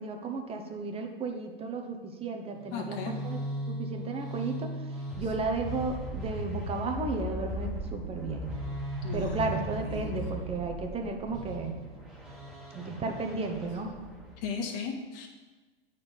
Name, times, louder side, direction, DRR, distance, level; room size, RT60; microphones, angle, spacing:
voice 1, 0.0-3.4 3.7-4.8 5.2-8.5 9.1-11.7 12.7-13.9, right 3 dB, 20° right, 4 dB, 1.0 m, -34 dB
sound 1, 2.6-14.4, equal, 5° right, 1.6 m, -38 dB
voice 2, 2.7-3.1 9.0-10.1 14.4-15.3, left 3 dB, 45° left, 1 dB, 1.7 m, -36 dB
8.6 x 4.2 x 7.0 m, 1.3 s
hypercardioid pair, 105°, 30 cm